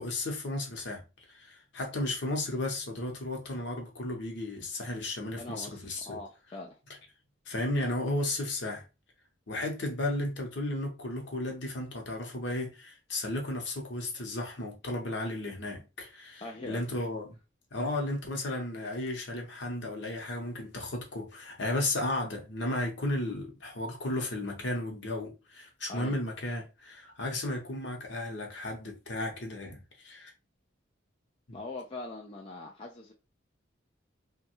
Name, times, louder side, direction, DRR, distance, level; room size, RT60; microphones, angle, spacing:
voice 1, 0.0-6.2 7.5-8.9 9.5-17.4 17.7-30.3 31.5-31.6, left 1 dB, 60° left, 0.9 m, -34 dB
voice 2, 5.4-6.8 16.4-16.8 25.9-26.2 31.5-33.1, left 2 dB, 30° left, 0.3 m, -42 dB
3.1 x 2.3 x 3.0 m
head